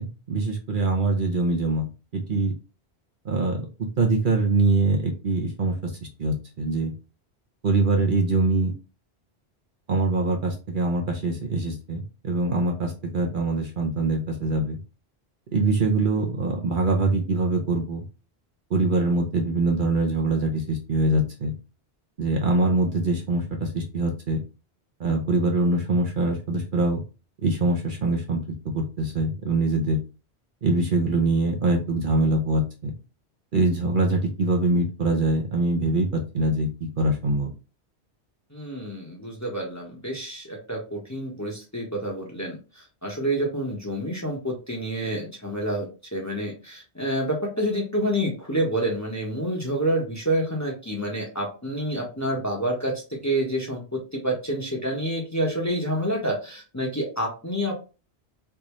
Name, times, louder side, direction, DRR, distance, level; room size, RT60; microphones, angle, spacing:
voice 1, 0.0-2.5 3.2-3.7 4.0-5.9 6.2-6.9 7.6-8.7 9.9-14.8 15.5-18.0 18.7-21.5 22.2-24.4 25.0-27.0 27.4-28.4 28.7-30.0 30.6-32.9 33.5-36.7 37.0-37.5, right 2 dB, 55° right, 1 dB, 0.8 m, -23 dB
voice 2, 38.5-57.7, right 1 dB, 15° left, -1 dB, 0.9 m, -28 dB
3.4 x 2.6 x 3.0 m, 0.31 s
omnidirectional pair, 1.1 m